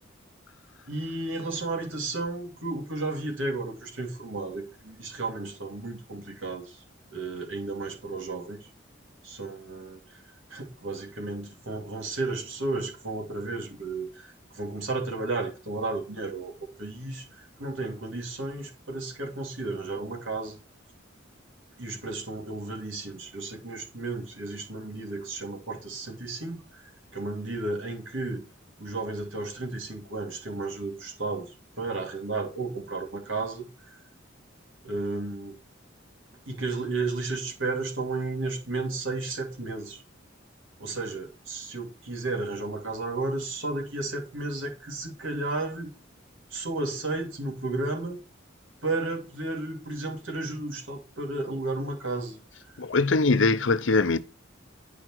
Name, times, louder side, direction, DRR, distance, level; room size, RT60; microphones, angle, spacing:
voice 1, 0.9-6.8 7.1-8.7 9.2-10.2 10.5-16.5 16.8-20.6 21.8-28.4 28.8-34.0 34.8-35.6 36.5-40.0 40.8-45.9 46.5-48.2 48.8-52.4, right 2 dB, 90° right, 2.4 m, -33 dB
voice 2, 52.8-54.2, left 3 dB, 75° left, 0.7 m, -22 dB
10.0 x 5.0 x 4.6 m
head